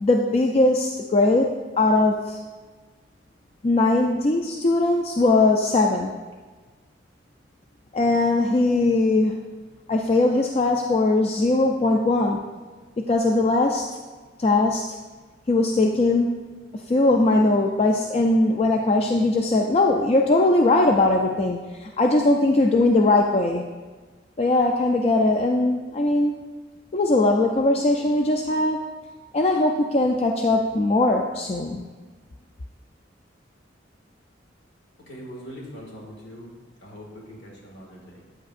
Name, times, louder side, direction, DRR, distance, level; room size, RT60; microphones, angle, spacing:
voice 1, 0.0-2.4 3.6-6.1 7.9-9.3 9.9-12.4 13.0-13.8 14.4-14.8 15.5-23.6 24.4-26.4 26.9-28.8 29.3-31.9, left 2 dB, 35° left, 2 dB, 0.3 m, -20 dB
voice 2, 35.1-36.5 36.8-38.2, equal, 65° left, -2 dB, 1.9 m, -41 dB
8.6 x 7.8 x 2.5 m, 1.3 s
head